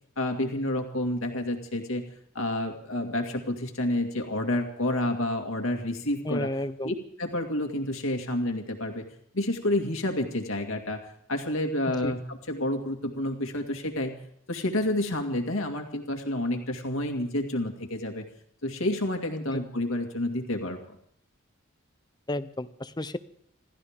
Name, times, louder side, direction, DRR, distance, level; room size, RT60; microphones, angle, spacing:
voice 1, 0.2-2.0 2.3-6.5 6.8-9.1 9.3-14.2 14.5-18.3 18.6-21.0, left 1 dB, 80° left, 3 dB, 2.2 m, -29 dB
voice 2, 6.2-6.9 12.0-12.1 19.5-19.6 22.3-23.2, left 1 dB, 20° left, 13 dB, 0.7 m, -32 dB
28.0 x 13.5 x 3.7 m, 0.67 s
head